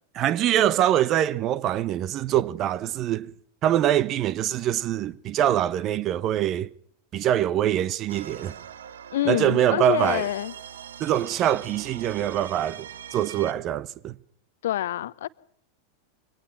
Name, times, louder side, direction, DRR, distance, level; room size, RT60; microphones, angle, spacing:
voice 1, 0.1-3.3 3.6-6.7 7.1-8.6 9.3-10.3 11.0-14.1, right 11 dB, 35° right, 0.8 m, -24 dB
sound 1, 8.1-13.5, right 8 dB, 65° right, 1.1 m, -42 dB
voice 2, 9.1-10.5 14.6-15.3, left 13 dB, 60° left, 0.9 m, -27 dB
24.0 x 18.5 x 6.0 m
figure-of-eight pair, 90°, 0 cm